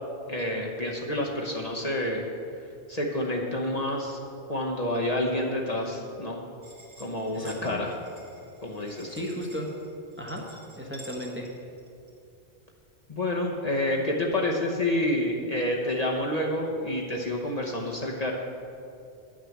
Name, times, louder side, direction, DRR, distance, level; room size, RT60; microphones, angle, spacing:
voice 1, 0.3-2.3 2.9-4.2 4.5-6.4 7.0-7.9 8.6-9.2 13.1-18.3, left 1 dB, 40° left, -2 dB, 1.0 m, -28 dB
sound 1, 6.6-12.2, right 2 dB, 70° right, 1.9 m, -51 dB
voice 2, 7.3-7.8 9.1-9.7 10.2-10.4 10.8-11.5, equal, 10° right, -1 dB, 1.1 m, -34 dB
10.0 x 6.3 x 7.3 m, 2.5 s
omnidirectional pair, 1.1 m